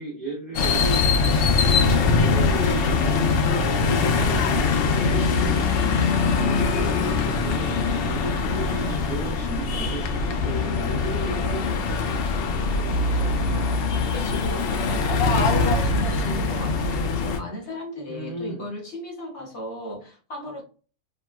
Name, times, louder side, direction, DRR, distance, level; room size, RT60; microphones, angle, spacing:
voice 1, 0.0-2.9 3.5-12.1 18.1-18.7, right 1 dB, 50° right, 0.8 m, -34 dB
sound 1, 0.5-17.4, left 4 dB, 90° left, 0.5 m, -22 dB
voice 2, 13.2-20.6, left 1 dB, 55° left, 0.9 m, -36 dB
2.9 x 2.6 x 2.2 m
omnidirectional pair, 1.6 m